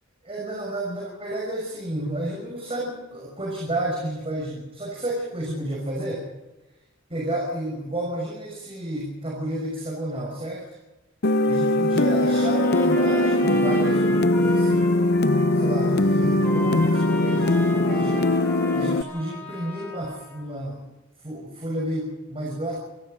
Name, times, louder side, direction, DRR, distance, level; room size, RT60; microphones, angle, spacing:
voice 1, 0.2-6.3 7.1-10.8 11.5-15.0 15.5-18.3 18.7-20.8 21.2-22.7, right 1 dB, 30° right, -2 dB, 5.9 m, -31 dB
sound 1, 11.2-19.0, left 1 dB, 55° left, 0.7 m, -21 dB
Trumpet, 12.3-20.4, left 1 dB, 10° left, 5.9 m, -36 dB
27.0 x 19.0 x 5.3 m, 1.1 s
head